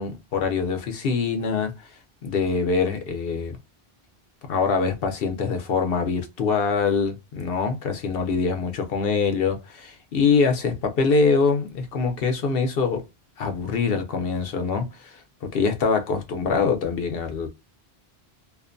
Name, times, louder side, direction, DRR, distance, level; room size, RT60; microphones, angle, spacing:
voice 1, 0.0-1.7 2.2-3.6 4.5-13.0 13.4-17.5, left 5 dB, 65° left, 0.9 m, -24 dB
2.5 x 2.1 x 2.4 m
omnidirectional pair, 1.1 m